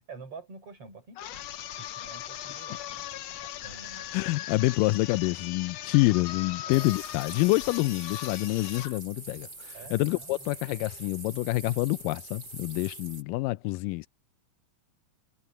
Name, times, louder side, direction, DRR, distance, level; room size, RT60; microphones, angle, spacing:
voice 1, 0.0-4.2 4.8-4.9 6.6-6.9 9.7-10.7, right 4 dB, 45° right, 6.1 m, -48 dB
sound 1, 1.1-9.0, left 12 dB, 70° left, 1.7 m, -39 dB
voice 2, 4.1-9.5 9.9-14.1, left 21 dB, 90° left, 2.2 m, -27 dB
sound 2, 6.7-13.2, right 3 dB, 30° right, 6.1 m, -45 dB
omnidirectional pair, 3.8 m